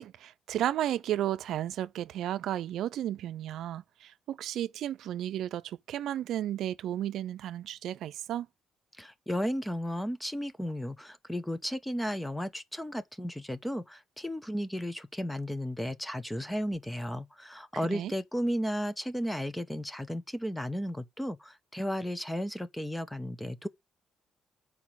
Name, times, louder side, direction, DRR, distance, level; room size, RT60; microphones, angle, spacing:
voice 1, 0.0-8.5 17.8-18.1, right 12 dB, 80° right, 0.5 m, -33 dB
voice 2, 9.0-23.7, equal, 5° left, 0.9 m, -34 dB
7.1 x 4.8 x 6.2 m
cardioid pair, 90°, 0 cm